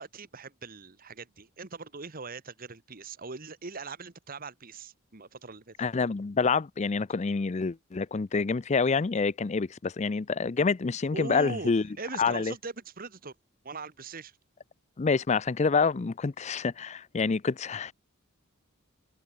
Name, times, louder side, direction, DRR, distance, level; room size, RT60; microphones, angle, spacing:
voice 1, 0.0-5.7 11.1-11.7 12.0-13.3 13.6-14.4, right 4 dB, 45° right, 1.4 m, -41 dB
voice 2, 5.8-11.8 12.2-12.5 15.0-17.9, left 4 dB, 30° left, 0.4 m, -27 dB
head